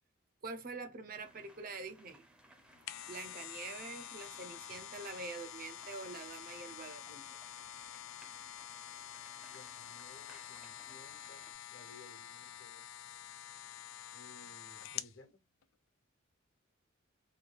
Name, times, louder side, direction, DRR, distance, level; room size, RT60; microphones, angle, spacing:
voice 1, 0.4-2.3 3.1-7.4, right 3 dB, 45° right, 0.6 m, -45 dB
sound 1, 1.2-11.5, right 1 dB, 5° right, 0.6 m, -63 dB
sound 2, 2.6-15.2 15.6-15.7, left 11 dB, 75° left, 0.3 m, -48 dB
voice 2, 9.5-12.8 14.1-15.4, left 2 dB, 60° left, 1.0 m, -59 dB
3.0 x 2.3 x 2.4 m
head